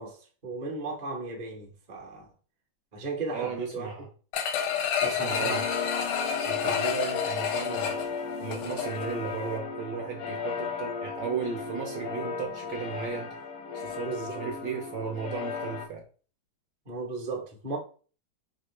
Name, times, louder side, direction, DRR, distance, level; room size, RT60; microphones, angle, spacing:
voice 1, 0.0-2.3 2.9-4.1 5.0-5.6 6.6-6.9 14.0-14.4 16.9-17.8, right 3 dB, 40° right, 0.6 m, -36 dB
voice 2, 3.3-4.1 5.0-5.6 6.4-8.0 8.4-13.3 13.7-16.0, right 6 dB, 70° right, 1.1 m, -35 dB
sound 1, 4.3-9.1 9.5-9.6, left 8 dB, 85° left, 1.6 m, -30 dB
sound 2, 5.3-15.9, left 5 dB, 70° left, 0.8 m, -35 dB
4.2 x 3.2 x 3.1 m
omnidirectional pair, 2.4 m